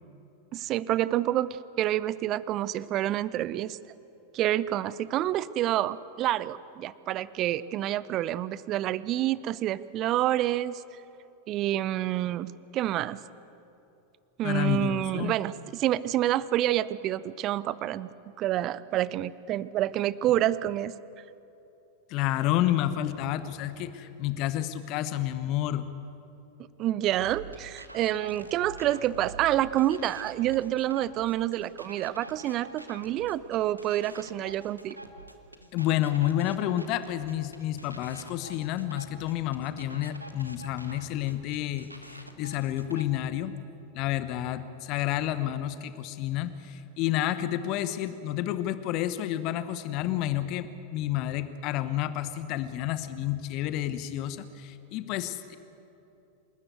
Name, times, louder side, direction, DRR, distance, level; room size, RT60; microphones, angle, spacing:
voice 1, 0.5-3.8 4.3-10.8 11.5-13.2 14.4-18.1 18.4-20.9 26.8-35.0, right 13 dB, 35° right, 19 dB, 0.6 m, -28 dB
voice 2, 14.4-15.4 22.1-25.9 35.7-43.5 43.9-55.6, left 13 dB, 40° left, 12 dB, 1.0 m, -30 dB
sound 1, 27.0-43.0, right 2 dB, 85° right, 1.4 m, -46 dB
28.0 x 13.0 x 8.3 m, 2.8 s
figure-of-eight pair, 90°, 0 cm